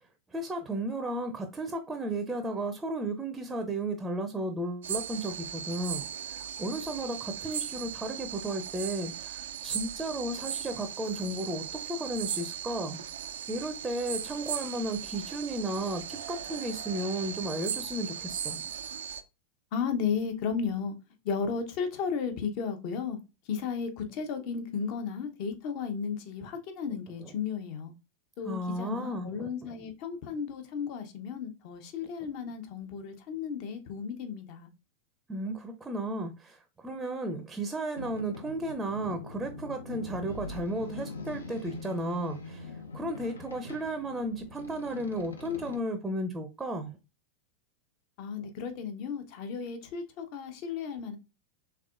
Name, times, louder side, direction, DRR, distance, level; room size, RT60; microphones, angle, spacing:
voice 1, 0.3-13.0 13.5-18.7 28.4-29.9 32.0-32.1 35.3-47.0, right 1 dB, 10° right, 0.6 m, -34 dB
sound 1, 4.8-19.2, right 9 dB, 60° right, 0.4 m, -38 dB
voice 2, 19.7-20.9 21.2-23.2 23.5-27.9 28.4-34.7 48.2-51.2, left 6 dB, 45° left, 0.8 m, -34 dB
Boat Water vehicle, 38.0-45.8, left 3 dB, 75° left, 0.8 m, -43 dB
4.6 x 3.6 x 2.4 m
figure-of-eight pair, 90°, 0 cm